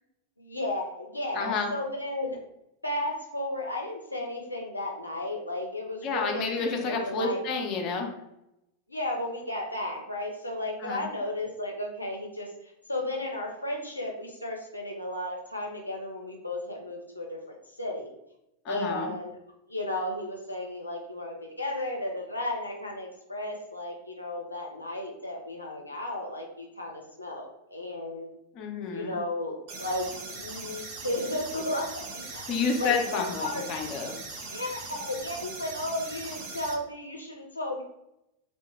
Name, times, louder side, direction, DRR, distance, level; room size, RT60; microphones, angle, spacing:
voice 1, 0.4-2.4 2.8-7.4 8.9-18.1 18.7-19.4 19.7-28.3 28.9-32.5 32.8-33.7 34.5-37.8, left 1 dB, 85° left, -1 dB, 0.5 m, -34 dB
voice 2, 1.3-1.7 6.0-8.1 10.8-11.0 18.6-19.1 28.6-29.2 32.5-34.2, left 4 dB, 35° left, 2 dB, 0.6 m, -30 dB
sound 1, 29.7-36.7, right 3 dB, 45° right, 0.7 m, -40 dB
3.1 x 2.1 x 3.2 m, 0.85 s
figure-of-eight pair, 90°, 0 cm